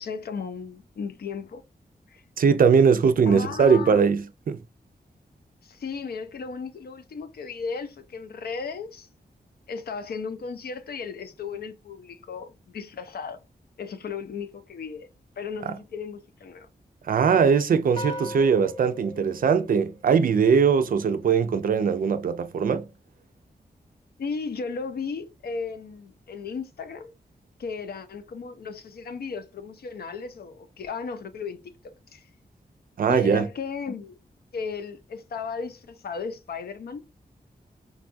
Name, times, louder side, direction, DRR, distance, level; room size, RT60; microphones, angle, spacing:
voice 1, 0.0-1.6 2.1-2.2 3.3-4.0 5.6-9.1 9.7-13.4 13.8-15.1 15.4-16.7 24.2-27.1 27.6-32.3 33.1-34.2 34.5-37.0, left 5 dB, 75° left, 0.5 m, -35 dB
voice 2, 2.4-4.6 15.7-15.8 17.1-22.9 33.0-33.5, right 6 dB, 60° right, 0.4 m, -21 dB
sound 1, 18.0-20.5, left 1 dB, 25° left, 0.7 m, -38 dB
3.7 x 2.3 x 2.5 m
wide cardioid pair, 85°, 16 cm